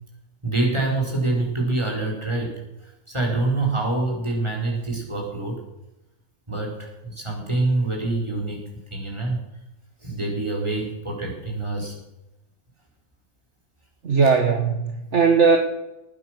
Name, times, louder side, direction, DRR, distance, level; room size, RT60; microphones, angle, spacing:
voice 1, 0.4-5.6 6.5-8.6 8.9-9.4 10.0-11.9 14.2-14.3, right 2 dB, 20° right, -1 dB, 5.0 m, -26 dB
voice 2, 14.0-15.6, right 5 dB, 55° right, 4 dB, 1.7 m, -18 dB
19.0 x 10.5 x 6.1 m, 0.92 s
omnidirectional pair, 1.5 m